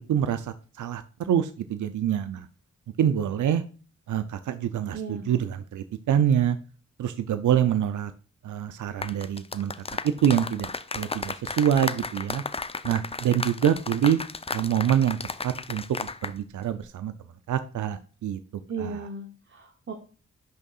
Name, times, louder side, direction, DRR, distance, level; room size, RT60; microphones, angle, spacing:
voice 1, 0.0-2.5 3.0-3.6 4.1-6.6 7.0-8.1 8.4-9.7 10.0-12.4 12.8-14.2 14.5-15.2 15.4-17.1 17.5-18.4 18.8-19.1, right 9 dB, 75° right, 10 dB, 0.6 m, -26 dB
voice 2, 4.9-5.2 18.7-19.9, right 4 dB, 40° right, 4 dB, 1.0 m, -35 dB
sound 1, 8.9-16.4 16.6-16.9, left 3 dB, 20° left, 0.5 m, -34 dB
11.0 x 3.7 x 2.4 m, 0.37 s
cardioid pair, 65°, 31 cm